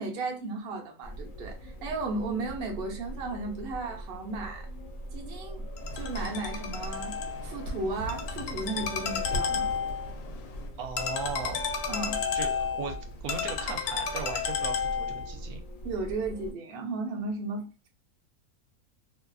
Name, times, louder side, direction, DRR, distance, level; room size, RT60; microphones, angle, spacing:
voice 1, 0.0-4.7 5.1-5.6 5.9-7.1 7.4-9.7 11.9-12.2 15.8-17.9, right 3 dB, 55° right, 0.7 m, -35 dB
sound 1, 1.0-16.5, right 1 dB, 65° left, 1.1 m, -42 dB
Ringtone, 5.8-15.3, left 6 dB, 90° left, 1.1 m, -32 dB
voice 2, 10.8-11.6 12.3-15.6, right 6 dB, 80° right, 1.1 m, -37 dB
2.7 x 2.4 x 2.3 m
omnidirectional pair, 1.6 m